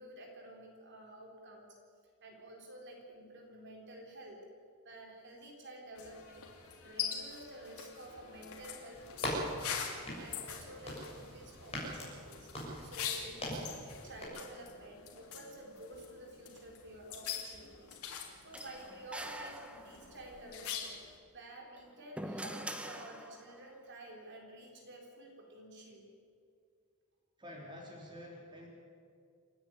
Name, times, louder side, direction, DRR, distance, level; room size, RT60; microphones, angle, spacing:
voice 1, 0.0-1.7 2.2-4.4 4.8-9.7 10.2-12.5 12.8-18.0 18.4-21.0 21.3-26.1, right 1 dB, 55° right, 0 dB, 4.0 m, -51 dB
sound 1, 5.9-21.2, left 7 dB, 80° left, 3.1 m, -44 dB
sound 2, 8.9-14.2, equal, 30° left, 6.8 m, -42 dB
sound 3, 18.5-20.3 21.6-23.7, right 1 dB, 5° right, 1.0 m, -44 dB
voice 2, 27.4-28.7, left 1 dB, 20° right, -2 dB, 3.7 m, -48 dB
28.5 x 10.0 x 9.9 m, 2.3 s
head